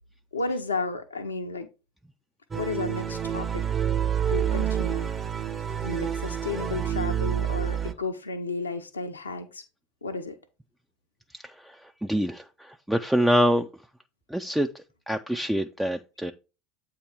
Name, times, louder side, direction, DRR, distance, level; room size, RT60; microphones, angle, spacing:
voice 1, 0.3-1.7 2.5-3.6 4.3-5.1 5.8-9.6 10.0-10.3, left 3 dB, 80° left, 0.6 m, -32 dB
sound 1, 2.5-7.9, right 9 dB, 20° right, 0.8 m, -28 dB
voice 2, 11.3-13.7 14.3-16.3, equal, 5° right, 0.4 m, -26 dB
8.3 x 2.8 x 5.6 m
figure-of-eight pair, 75°, 0 cm